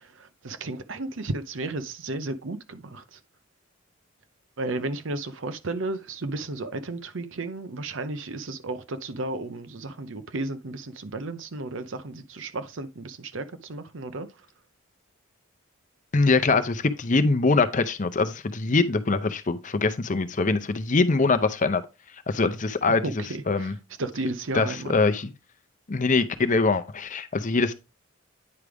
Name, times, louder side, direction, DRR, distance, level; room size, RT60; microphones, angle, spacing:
voice 1, 0.0-3.2 4.6-14.3 23.0-23.7 24.0-25.0, right 2 dB, 65° right, 0.8 m, -33 dB
voice 2, 16.1-21.8 22.3-23.0 23.5-23.7 24.5-25.3 25.9-27.7, left 3 dB, 40° left, 0.6 m, -23 dB
9.6 x 4.9 x 3.4 m
head